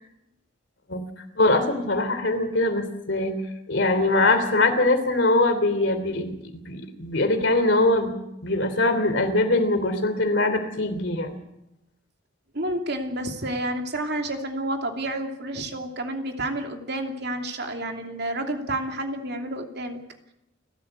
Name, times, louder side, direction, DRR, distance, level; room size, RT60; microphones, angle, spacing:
voice 1, 1.3-3.4 3.7-8.1 8.4-11.4, left 2 dB, 65° left, 8 dB, 3.3 m, -22 dB
voice 2, 12.5-20.0, right 1 dB, 55° right, 4 dB, 2.8 m, -30 dB
29.5 x 13.0 x 8.2 m, 0.86 s
head